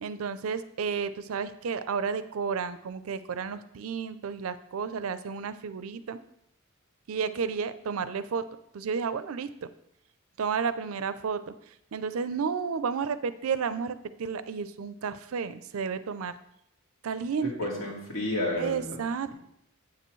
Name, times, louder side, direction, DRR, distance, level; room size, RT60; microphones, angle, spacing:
voice 1, 0.0-6.2 7.1-8.4 8.7-9.7 10.4-16.3 17.0-17.7 18.6-19.3, right 6 dB, 85° right, 13 dB, 0.5 m, -32 dB
voice 2, 17.6-19.0, left 1 dB, 80° left, -3 dB, 2.2 m, -31 dB
8.2 x 6.8 x 3.1 m, 0.77 s
head